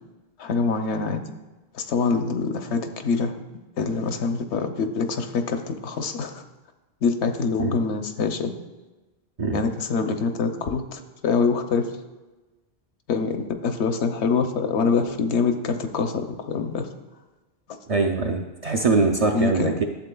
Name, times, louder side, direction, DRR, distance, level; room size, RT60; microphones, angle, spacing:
voice 1, 0.4-1.2 1.7-3.3 3.8-6.4 7.0-8.5 9.5-11.9 13.1-16.9 19.3-19.8, left 4 dB, 90° left, 7 dB, 1.0 m, -25 dB
voice 2, 17.9-19.8, right 3 dB, 50° right, 2 dB, 0.5 m, -22 dB
11.5 x 7.3 x 2.3 m, 1.1 s
omnidirectional pair, 1.1 m